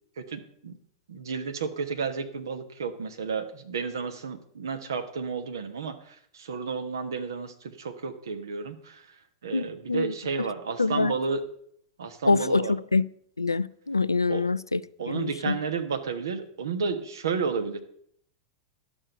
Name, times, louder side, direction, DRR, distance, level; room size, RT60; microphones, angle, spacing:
voice 1, 0.2-0.8 1.1-5.9 6.4-9.0 9.4-11.4 12.0-12.7 14.3-14.4 15.0-17.8, right 5 dB, 70° right, 1.2 m, -32 dB
voice 2, 9.5-10.1 10.8-11.1 12.2-13.1 13.4-14.8 15.1-15.6, left 3 dB, 85° left, 0.3 m, -25 dB
11.5 x 6.3 x 6.8 m
figure-of-eight pair, 90°, 2 cm